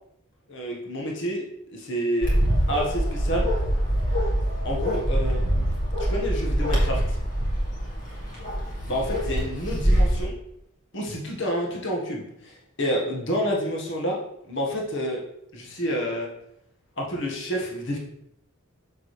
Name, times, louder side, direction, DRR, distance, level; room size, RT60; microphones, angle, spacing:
voice 1, 0.5-1.4 1.7-2.3 2.7-3.5 4.6-5.7 6.0-7.2 8.9-10.4 10.9-14.2 14.5-15.2 15.5-16.3 17.0-18.0, equal, 60° left, -1 dB, 1.5 m, -29 dB
Bark, 2.2-10.2, equal, 40° left, 2.3 m, -24 dB
7.1 x 7.0 x 3.3 m, 0.77 s
head